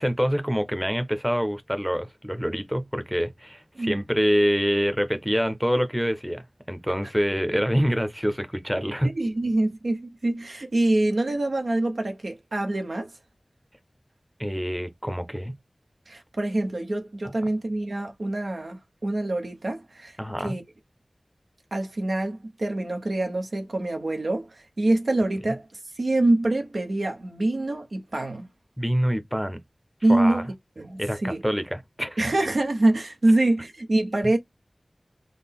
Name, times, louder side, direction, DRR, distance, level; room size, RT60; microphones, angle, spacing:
voice 1, 0.0-6.4 6.7-9.1 14.4-15.5 20.2-20.6 28.8-29.6 30.1-30.4 31.0-32.3, equal, 5° right, 0.7 m, -26 dB
voice 2, 9.0-13.1 16.1-20.6 21.7-25.7 26.0-28.5 30.0-30.5 30.8-31.4 32.2-34.4, right 2 dB, 75° right, 0.9 m, -25 dB
3.9 x 2.1 x 3.5 m
wide cardioid pair, 65°, 0 cm